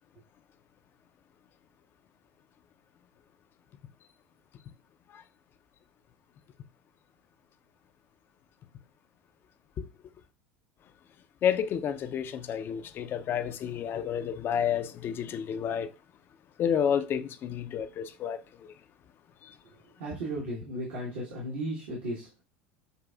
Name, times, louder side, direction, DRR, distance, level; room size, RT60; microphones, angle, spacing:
voice 1, 11.4-15.9 16.6-18.4 19.4-19.5, left 8 dB, 40° left, 0.4 m, -30 dB
voice 2, 20.0-22.4, right 1 dB, 70° right, 1.1 m, -35 dB
6.8 x 2.4 x 2.3 m
hypercardioid pair, 80°, 6 cm